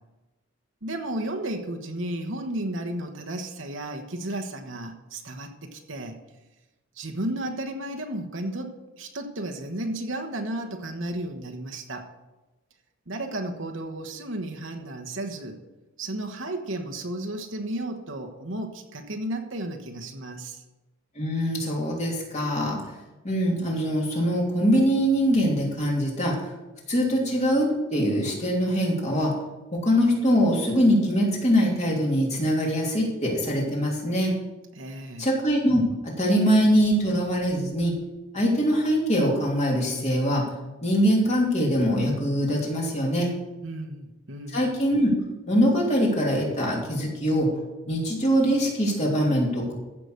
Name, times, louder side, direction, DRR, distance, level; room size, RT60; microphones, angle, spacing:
voice 1, 0.8-6.2 6.9-12.1 13.1-15.6 16.0-20.6 34.7-35.3 43.6-44.6, right 1 dB, 60° right, 4 dB, 1.2 m, -33 dB
voice 2, 21.1-22.8 23.2-26.5 26.9-29.3 29.7-34.3 35.2-38.0 38.3-40.5 40.8-43.3 44.5-45.1 45.5-47.5 47.9-49.7, equal, 30° left, -2 dB, 2.9 m, -23 dB
15.0 x 6.1 x 6.5 m, 1.1 s
head